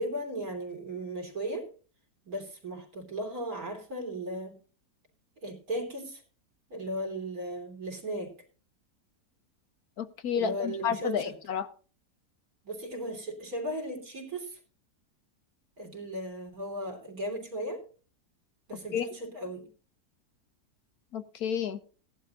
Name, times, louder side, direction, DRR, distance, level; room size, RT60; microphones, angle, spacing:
voice 1, 0.0-1.7 2.3-4.6 5.4-6.2 6.7-8.4 10.3-11.4 12.6-14.6 15.8-17.8 18.7-19.7, right 1 dB, 60° right, 3 dB, 3.5 m, -36 dB
voice 2, 10.0-11.7 18.9-19.1 21.1-21.8, left 8 dB, 70° left, 12 dB, 1.4 m, -31 dB
18.0 x 11.5 x 2.5 m, 0.38 s
omnidirectional pair, 1.7 m